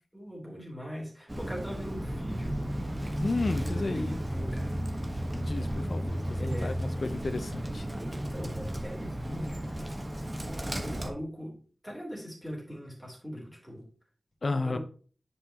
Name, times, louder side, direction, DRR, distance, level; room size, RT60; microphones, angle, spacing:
voice 1, 0.1-2.5 3.4-4.7 6.4-6.7 8.0-9.6 10.8-11.6 11.8-13.8 14.6-14.8, equal, 5° right, 3.4 m, -40 dB
Bird, 1.3-11.1, equal, 25° right, 1.2 m, -34 dB
voice 2, 3.2-4.2 5.3-7.9 14.4-14.8, left 3 dB, 65° left, 0.7 m, -33 dB
9.7 x 5.6 x 2.9 m
wide cardioid pair, 85°, 0 cm